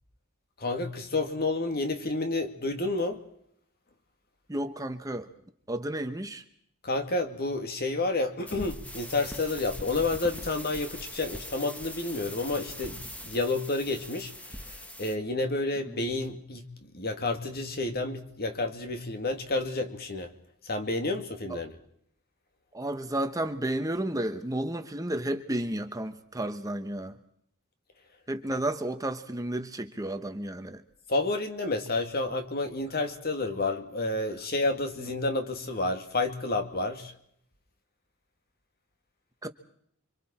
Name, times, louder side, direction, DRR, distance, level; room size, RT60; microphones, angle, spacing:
voice 1, 0.6-3.2 6.8-13.0 13.2-20.3 20.7-21.8 31.1-37.1, left 2 dB, 45° left, 2.2 m, -30 dB
voice 2, 4.5-5.3 5.7-6.4 15.9-16.0 22.7-27.2 28.3-30.8 39.4-39.5, right 1 dB, 15° right, 1.1 m, -32 dB
sound 1, 8.5-15.2, equal, 5° left, 1.2 m, -42 dB
30.0 x 25.0 x 4.4 m
head